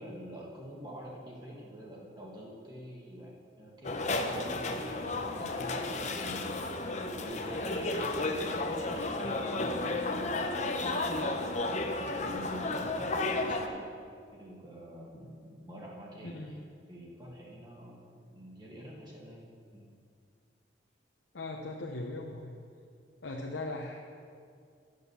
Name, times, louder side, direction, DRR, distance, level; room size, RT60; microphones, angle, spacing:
voice 1, 0.0-6.7 7.1-11.0 12.0-13.9 14.3-16.6 16.9-19.4 19.7-19.9, equal, 25° right, -3 dB, 1.5 m, -46 dB
sound 1, 3.8-13.7, left 2 dB, 40° left, 0.7 m, -33 dB
voice 2, 16.2-16.7 21.3-22.5 23.2-24.0, left 2 dB, 90° left, 0 dB, 0.8 m, -39 dB
11.5 x 6.7 x 6.9 m, 2.3 s
head